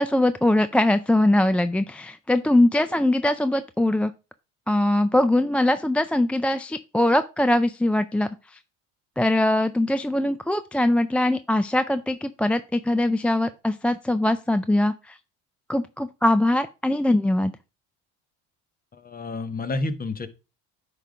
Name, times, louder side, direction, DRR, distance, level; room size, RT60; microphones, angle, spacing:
voice 1, 0.0-4.1 4.7-8.3 9.2-15.2 15.7-17.5, left 1 dB, 5° left, 12 dB, 0.3 m, -22 dB
voice 2, 18.9-20.3, left 2 dB, 25° left, 11 dB, 1.1 m, -29 dB
9.8 x 3.8 x 4.9 m, 0.30 s
supercardioid pair, 80°, 35 cm